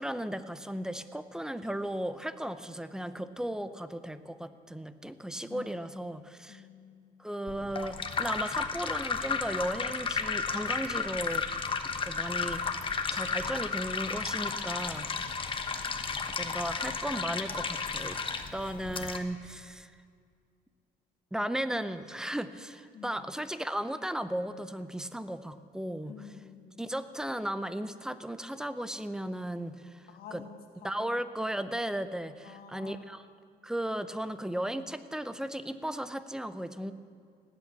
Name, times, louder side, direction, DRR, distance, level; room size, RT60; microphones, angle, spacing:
voice 1, 0.0-6.7 7.2-11.5 12.0-12.8 13.1-15.1 15.4-15.7 16.3-18.2 18.5-20.0 21.3-26.2 26.8-30.4 30.8-33.2 33.6-36.9, right 1 dB, 5° right, 13 dB, 0.7 m, -36 dB
voice 2, 5.5-6.1 6.5-7.1 22.9-23.4 26.0-26.8 30.1-31.3 32.4-33.1, left 7 dB, 65° left, 3 dB, 1.9 m, -49 dB
sound 1, 7.5-19.2, left 5 dB, 30° left, 1.1 m, -33 dB
18.0 x 8.3 x 8.2 m, 2.2 s
cardioid pair, 110°, 17 cm